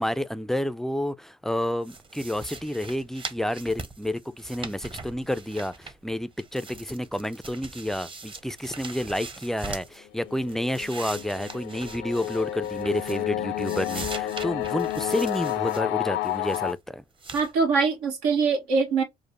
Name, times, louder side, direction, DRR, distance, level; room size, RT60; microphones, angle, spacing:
voice 1, 0.0-17.0, left 1 dB, ahead, 0.4 m, -30 dB
sound 1, 1.8-6.1 6.4-10.0 10.4-13.3 13.6-15.8 16.2-16.7 17.2-17.5, right 3 dB, 25° right, 0.8 m, -41 dB
sound 2, 10.1-16.7, left 13 dB, 65° left, 0.5 m, -30 dB
voice 2, 17.3-19.0, right 5 dB, 85° right, 1.4 m, -23 dB
5.0 x 2.1 x 3.0 m
hypercardioid pair, 65°, 20 cm